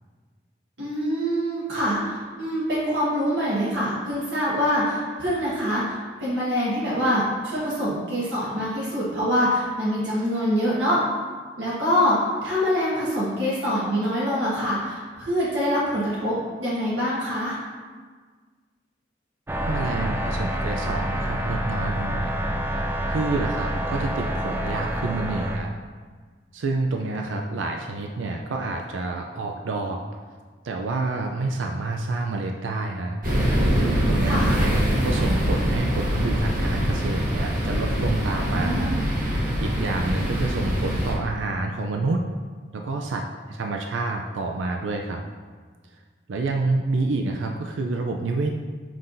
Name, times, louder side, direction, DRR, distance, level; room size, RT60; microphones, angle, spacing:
voice 1, 0.8-11.0 11.6-17.6 34.2-34.6 38.5-39.0, equal, 70° right, -8 dB, 1.4 m, -25 dB
sound 1, 19.5-25.6, equal, 10° right, 0.3 m, -27 dB
voice 2, 19.5-22.4 23.1-25.7 26.5-30.0 30.6-33.2 33.5-34.6 35.0-39.0 39.3-42.2 42.7-45.2 46.3-48.5, right 3 dB, 85° right, 2 dB, 0.4 m, -28 dB
sound 2, 33.2-41.1, equal, 50° right, 1.2 m, -23 dB
7.7 x 5.5 x 2.6 m, 1.5 s
head